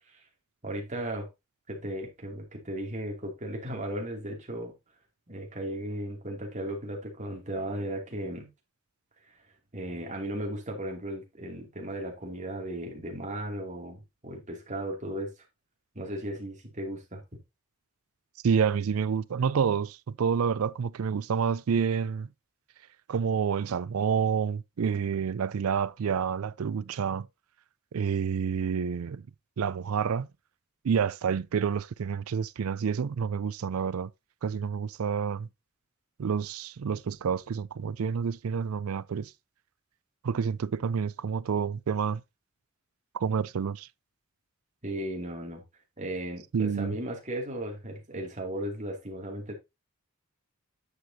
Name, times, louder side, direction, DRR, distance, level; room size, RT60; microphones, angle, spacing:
voice 1, 0.6-1.3 1.7-4.7 5.3-8.5 9.3-9.4 9.7-15.3 15.9-17.2 44.8-45.6 46.0-49.5, right 1 dB, 35° right, 2.7 m, -36 dB
voice 2, 18.4-22.3 23.1-27.3 27.9-29.2 29.6-30.3 30.8-34.1 34.4-35.5 36.2-39.3 40.2-42.2 43.1-43.9 46.5-47.0, right 6 dB, 85° right, 0.4 m, -28 dB
9.6 x 6.7 x 2.8 m
head